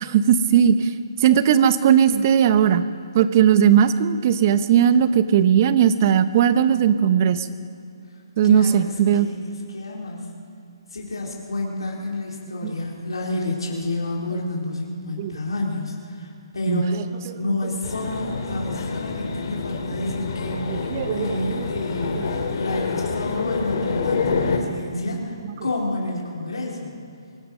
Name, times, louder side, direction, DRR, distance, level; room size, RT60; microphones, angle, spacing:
voice 1, 0.0-0.9 1.2-2.9 3.1-7.5 8.4-9.3 12.6-12.7 15.2-15.4 16.7-17.0 20.7-21.7, right 8 dB, 35° right, 12 dB, 0.8 m, -18 dB
voice 2, 8.4-10.3 10.9-17.0 17.3-25.4 25.6-26.9, left 2 dB, 90° left, -2 dB, 3.9 m, -29 dB
sound 1, 17.8-24.6, left 4 dB, 55° left, 2.3 m, -27 dB
24.0 x 11.0 x 5.4 m, 2.5 s
hypercardioid pair, 155°, 3 cm